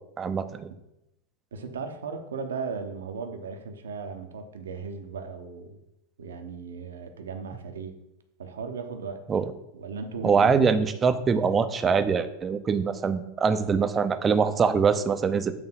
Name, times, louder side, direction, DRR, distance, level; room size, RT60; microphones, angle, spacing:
voice 1, 0.2-0.7 9.3-9.4 10.2-15.5, right 5 dB, 25° right, 10 dB, 0.6 m, -23 dB
voice 2, 1.5-5.8 6.2-8.0 8.4-9.4 9.7-10.6, right 5 dB, 70° right, 6 dB, 0.9 m, -36 dB
8.0 x 3.7 x 5.8 m, 0.87 s
figure-of-eight pair, 90°, 0 cm